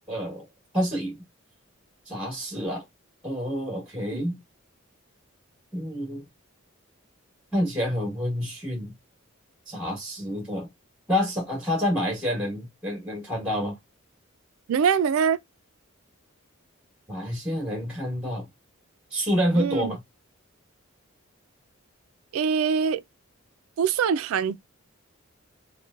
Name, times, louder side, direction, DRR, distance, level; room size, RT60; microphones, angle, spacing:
voice 1, 0.1-0.4 0.7-1.2 2.1-2.8 3.2-4.4 5.7-6.2 7.5-8.9 9.7-10.7 11.1-13.8 17.1-18.5 19.1-20.0, equal, 5° right, 1.1 m, -28 dB
voice 2, 14.7-15.4 19.5-20.0 22.3-23.0 23.8-24.5, right 6 dB, 80° right, 0.3 m, -23 dB
3.0 x 2.1 x 2.3 m
head